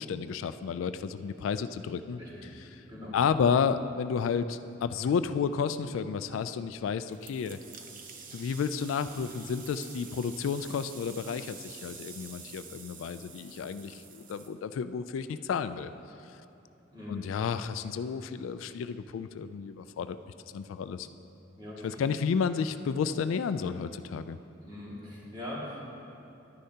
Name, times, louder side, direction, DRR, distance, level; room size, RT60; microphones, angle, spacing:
voice 1, 0.0-2.2 2.7-2.8 3.1-7.6 8.3-15.9 17.1-20.2 20.5-21.1 21.8-24.4, left 6 dB, 80° left, 11 dB, 0.3 m, -31 dB
sound 1, 7.1-14.5, right 5 dB, 45° right, 0.7 m, -48 dB
voice 2, 16.9-17.2 21.6-22.0 24.6-25.9, left 1 dB, 20° right, -6 dB, 2.0 m, -41 dB
11.5 x 9.9 x 2.8 m, 2.7 s
head